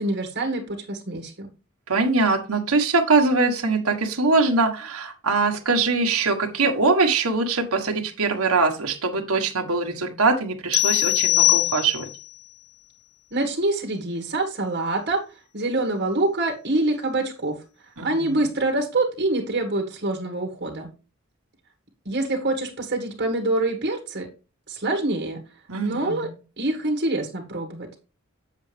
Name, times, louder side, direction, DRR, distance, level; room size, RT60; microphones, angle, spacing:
voice 1, 0.0-1.5 13.3-15.2 15.5-17.6 18.0-20.9 22.1-24.3 24.7-25.4 25.8-26.3 26.6-27.9, right 2 dB, 50° right, 1 dB, 1.7 m, -25 dB
voice 2, 1.9-12.1 18.0-18.4 25.7-26.3, right 3 dB, 85° right, 3 dB, 1.5 m, -22 dB
sound 1, 10.7-12.3, left 18 dB, 70° left, 0.3 m, -21 dB
8.4 x 7.3 x 3.4 m, 0.33 s
head